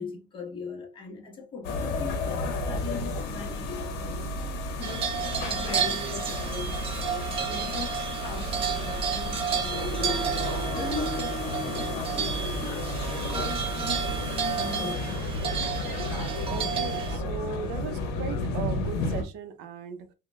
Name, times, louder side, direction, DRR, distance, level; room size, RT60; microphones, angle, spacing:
voice 1, 0.0-10.5 10.7-12.7 13.2-14.1 14.5-15.2, left 4 dB, 30° left, 1.0 m, -40 dB
sound 1, 1.6-19.2, left 2 dB, 65° left, 0.9 m, -32 dB
sound 2, 4.8-17.2, right 7 dB, 30° right, 0.5 m, -32 dB
voice 2, 16.5-20.1, right 7 dB, 70° right, 0.6 m, -37 dB
3.8 x 2.2 x 3.1 m
cardioid pair, 175°, 18 cm